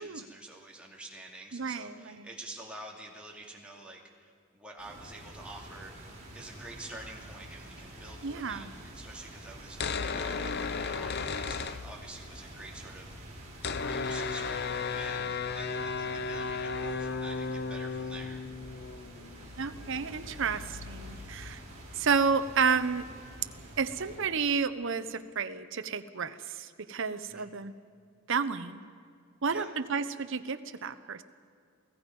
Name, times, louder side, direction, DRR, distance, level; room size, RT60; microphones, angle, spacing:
voice 1, 0.0-6.0 6.3-18.4 27.3-27.5 29.5-29.7, right 2 dB, 5° right, -2 dB, 2.6 m, -48 dB
voice 2, 1.5-2.3 8.2-8.7 19.6-21.6 21.9-23.0 23.8-27.7 28.3-28.8 29.4-31.2, right 5 dB, 60° right, 12 dB, 0.9 m, -31 dB
sound 1, 4.8-24.2, right 1 dB, 30° right, 4.8 m, -48 dB
sound 2, 9.6-12.4 12.7-12.8 12.9-22.4, left 4 dB, 50° left, 0.6 m, -35 dB
28.5 x 17.0 x 5.4 m, 2.2 s
head